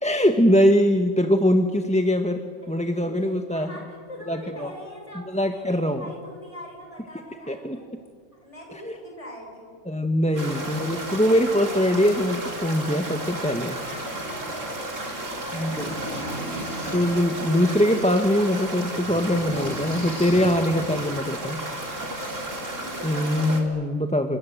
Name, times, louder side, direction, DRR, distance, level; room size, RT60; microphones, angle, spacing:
voice 1, 0.0-3.7 4.3-4.7 5.3-6.0 7.5-7.8 8.8-8.9 9.9-13.8 15.5-15.9 16.9-21.6 23.0-24.4, equal, 5° left, 6 dB, 1.1 m, -22 dB
voice 2, 2.6-7.8 8.3-9.8 10.3-10.7 11.4-11.8 13.8-16.8 21.0-21.2 22.6-23.6, equal, 25° left, 0 dB, 6.3 m, -43 dB
sound 1, 10.4-23.6, right 1 dB, 85° right, 3.9 m, -33 dB
sound 2, 15.4-17.1 17.5-18.2 18.5-20.6 21.7-21.8 22.2-22.4, equal, 50° left, 6.0 m, -37 dB
28.5 x 26.0 x 7.8 m, 2.1 s
omnidirectional pair, 1.3 m